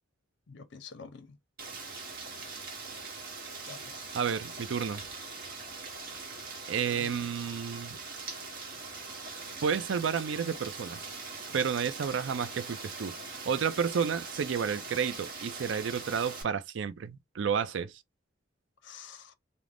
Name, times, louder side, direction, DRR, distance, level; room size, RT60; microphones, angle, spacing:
voice 1, 0.5-1.4 3.7-4.1 6.9-7.2 18.8-19.3, left 5 dB, 65° left, 0.5 m, -48 dB
Rain, 1.6-16.4, right 4 dB, 50° right, 0.9 m, -42 dB
voice 2, 4.1-5.0 6.7-8.0 9.6-11.1 11.5-13.2 13.5-18.0, right 7 dB, 65° right, 0.4 m, -31 dB
2.5 x 2.0 x 3.3 m
head